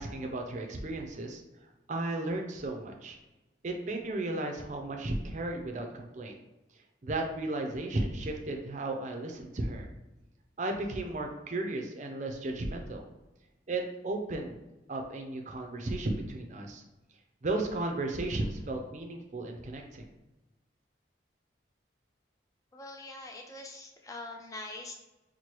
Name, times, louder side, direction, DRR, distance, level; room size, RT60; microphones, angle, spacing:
voice 1, 0.0-1.4 1.9-3.2 3.6-6.4 7.0-9.9 10.6-13.0 13.7-14.6 14.9-16.8 17.4-20.1, right 2 dB, 40° right, 3 dB, 0.5 m, -34 dB
voice 2, 22.7-24.9, left 2 dB, 20° left, 1 dB, 0.4 m, -43 dB
4.5 x 2.2 x 3.0 m, 1.0 s
head